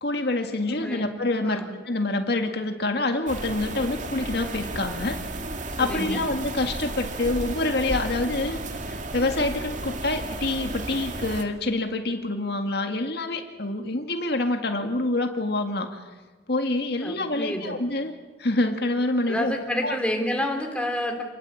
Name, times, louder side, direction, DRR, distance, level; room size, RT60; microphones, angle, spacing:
voice 1, 0.0-5.2 5.8-8.6 8.9-16.0 16.5-18.1 18.4-19.5 19.8-20.0, left 2 dB, 65° left, 5 dB, 2.1 m, -26 dB
voice 2, 0.7-1.1 1.4-1.7 5.8-6.3 17.0-17.7 19.3-21.2, left 1 dB, 5° left, 3 dB, 4.0 m, -29 dB
sound 1, 3.3-11.4, right 2 dB, 45° right, 2.3 m, -33 dB
28.5 x 21.0 x 8.7 m, 1.3 s
head